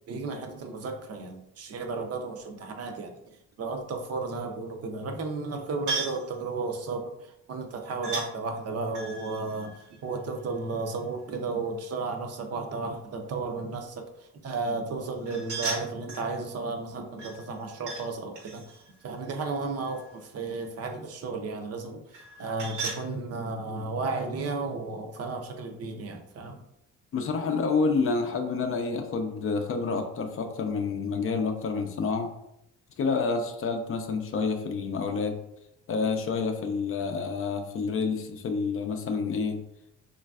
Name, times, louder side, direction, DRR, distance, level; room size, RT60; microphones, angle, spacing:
voice 1, 0.1-3.2 3.6-14.1 14.4-22.0 22.4-26.6, right 3 dB, 55° right, 4 dB, 0.5 m, -33 dB
sound 1, 5.9-6.3 8.0-8.3 8.9-10.7 15.2-16.3 17.2-18.1 18.3-20.2 22.1-23.0, right 4 dB, 75° right, 0.8 m, -36 dB
voice 2, 27.1-32.3 33.0-35.4 35.9-39.6, left 4 dB, 45° left, 5 dB, 0.4 m, -28 dB
3.1 x 2.5 x 2.3 m, 0.81 s
cardioid pair, 90°, 30 cm